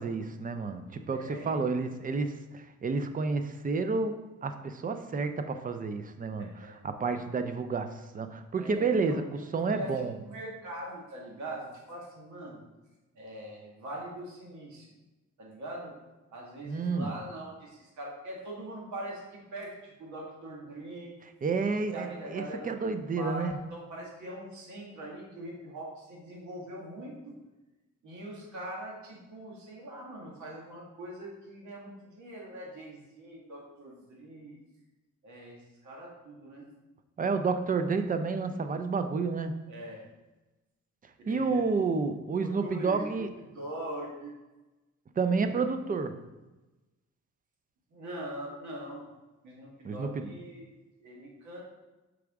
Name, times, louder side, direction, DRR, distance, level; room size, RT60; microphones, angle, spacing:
voice 1, 0.0-10.1 16.7-17.1 21.4-23.6 37.2-39.6 41.3-43.3 45.2-46.2 49.8-50.3, right 4 dB, 30° right, 9 dB, 0.5 m, -30 dB
voice 2, 1.1-1.9 6.4-6.7 8.6-9.2 9.5-12.6 13.2-14.9 15.4-15.9 16.3-21.2 21.9-22.7 23.2-27.3 28.0-34.6 35.2-36.7 39.7-40.0 41.3-41.6 42.4-44.3 47.9-49.0 49.4-50.7 51.0-51.6, right 1 dB, 70° right, -3 dB, 1.8 m, -42 dB
6.1 x 4.8 x 3.6 m, 1.1 s
cardioid pair, 90°, 30 cm